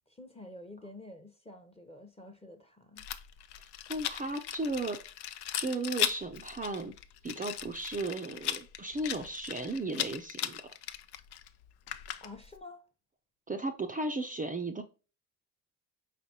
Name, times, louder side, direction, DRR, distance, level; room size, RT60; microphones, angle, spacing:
voice 1, 0.1-3.0 12.2-12.8, left 2 dB, 15° left, 0.8 m, -49 dB
Rattle, 3.0-12.6, left 11 dB, 65° left, 0.6 m, -38 dB
voice 2, 3.9-5.0 5.5-6.9 7.2-10.6 13.5-14.8, right 2 dB, 20° right, 0.5 m, -35 dB
5.0 x 3.3 x 2.8 m
supercardioid pair, 65°, 43 cm